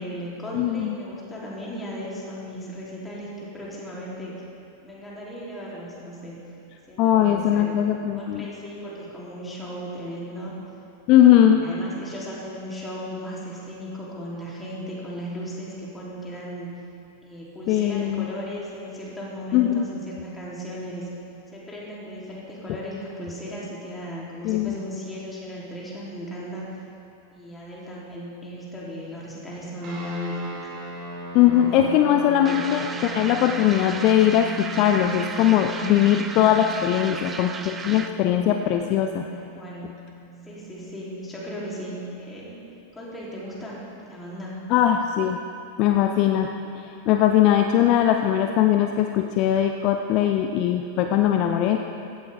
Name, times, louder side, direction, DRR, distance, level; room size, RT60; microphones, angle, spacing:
voice 1, 0.0-4.4 4.8-6.4 6.9-7.7 8.1-10.5 11.3-16.7 17.2-21.1 21.5-26.8 27.3-30.7 31.4-32.1 32.4-32.5 36.9-37.3 39.3-40.0 40.4-42.6 42.9-43.8 44.1-44.6, equal, 10° left, -6 dB, 3.3 m, -36 dB
voice 2, 0.5-0.9 7.0-8.5 11.1-11.6 17.7-18.3 19.5-19.9 24.4-24.7 31.3-39.3 44.7-45.4 45.8-46.5 47.1-51.8, left 11 dB, 40° left, 5 dB, 0.5 m, -20 dB
sound 1, 29.8-41.6, right 2 dB, 35° right, 3.4 m, -39 dB
sound 2, 32.5-38.2, right 4 dB, 20° right, 0.7 m, -35 dB
15.5 x 12.0 x 3.6 m, 2.7 s
figure-of-eight pair, 90°, 0 cm